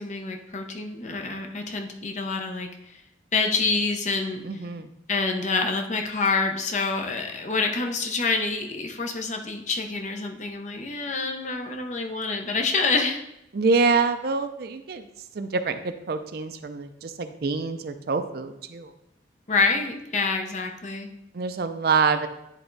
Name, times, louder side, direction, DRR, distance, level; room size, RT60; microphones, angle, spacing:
voice 1, 0.0-2.7 3.3-4.4 5.1-13.2 19.5-21.1, left 4 dB, 40° left, 4 dB, 0.7 m, -27 dB
voice 2, 4.4-4.9 13.5-15.1 15.3-18.9 21.3-22.3, right 4 dB, 55° right, 9 dB, 0.4 m, -26 dB
9.9 x 3.5 x 3.9 m, 0.84 s
head